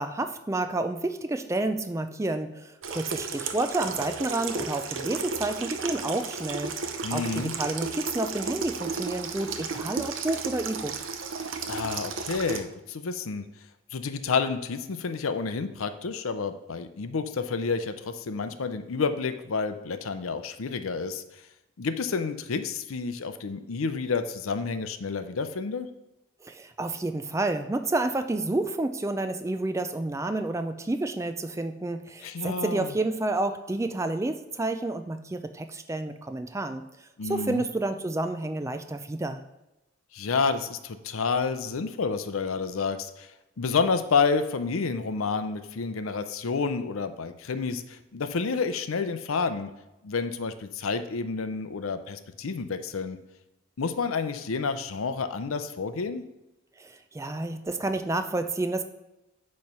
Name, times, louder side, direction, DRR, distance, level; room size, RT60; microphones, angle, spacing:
voice 1, 0.0-6.7 7.1-10.9 26.4-36.8 37.3-39.4 56.8-58.9, right 2 dB, 15° right, 8 dB, 0.3 m, -30 dB
Water tap faucet / Sink (filling or washing), 2.8-12.6, right 5 dB, 70° right, 0.7 m, -34 dB
voice 2, 7.0-7.5 11.7-13.4 13.9-21.2 21.8-25.9 32.2-32.9 37.2-37.7 40.1-43.3 43.6-49.7 50.0-53.2 53.8-56.2, left 4 dB, 85° left, 10 dB, 0.6 m, -29 dB
8.8 x 3.2 x 5.4 m, 0.97 s
head